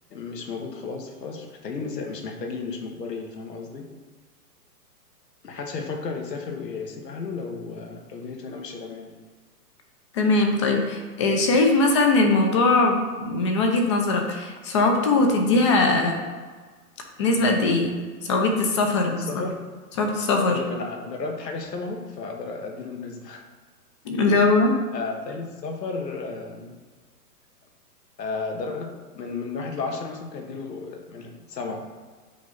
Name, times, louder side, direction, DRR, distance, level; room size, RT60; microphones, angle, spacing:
voice 1, 0.1-3.9 5.4-9.2 19.0-19.5 20.4-23.4 24.3-24.4 24.9-26.7 28.2-31.8, left 4 dB, 90° left, 2 dB, 2.0 m, -33 dB
voice 2, 10.1-16.2 17.2-17.9 18.2-19.5 20.0-20.6 24.0-24.8, left 3 dB, 20° left, 3 dB, 0.7 m, -21 dB
7.8 x 4.5 x 5.4 m, 1.5 s
hypercardioid pair, 165°, 48 cm